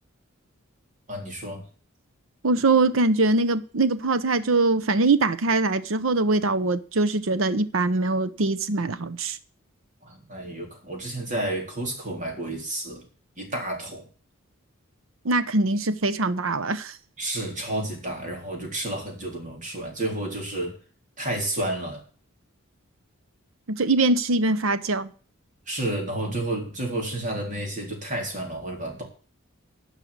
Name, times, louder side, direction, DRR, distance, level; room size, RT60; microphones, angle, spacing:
voice 1, 1.1-1.7 10.0-13.1 13.4-14.1 17.2-20.8 21.2-22.0 25.7-29.0, right 1 dB, 35° right, 3.7 m, -31 dB
voice 2, 2.4-9.4 15.2-16.9 23.7-25.1, right 3 dB, 70° right, 0.8 m, -22 dB
10.0 x 5.7 x 8.5 m
head